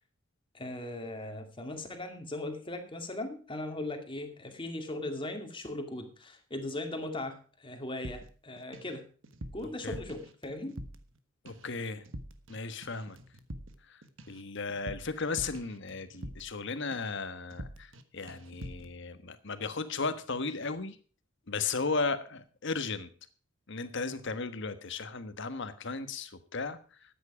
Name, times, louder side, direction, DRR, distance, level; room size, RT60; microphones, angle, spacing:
voice 1, 0.5-9.0 9.5-10.8, left 2 dB, 25° left, 5 dB, 2.4 m, -38 dB
sound 1, 8.0-9.0 9.2-11.2 11.5-11.8 12.0-12.6 12.8-16.6 16.9-17.2 17.5-18.0 18.3-18.9, equal, 70° right, 1.4 m, -45 dB
voice 2, 11.4-12.0 12.5-13.2 13.9-14.0 14.3-21.0 21.5-23.1 23.7-27.1, left 4 dB, 65° left, 11 dB, 1.4 m, -35 dB
13.5 x 9.5 x 4.9 m, 0.39 s
head